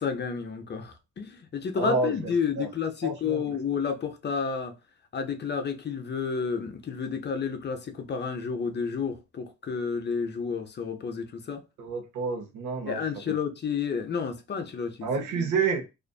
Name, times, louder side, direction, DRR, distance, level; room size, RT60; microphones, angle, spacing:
voice 1, 0.0-4.7 5.1-11.6 12.9-15.5, left 6 dB, 35° left, 0.5 m, -31 dB
voice 2, 1.7-2.3 2.6-2.7 3.0-3.6 11.8-13.0 15.0-15.8, right 4 dB, 75° right, 0.8 m, -29 dB
2.5 x 2.5 x 2.2 m
cardioid pair, 90°, 30 cm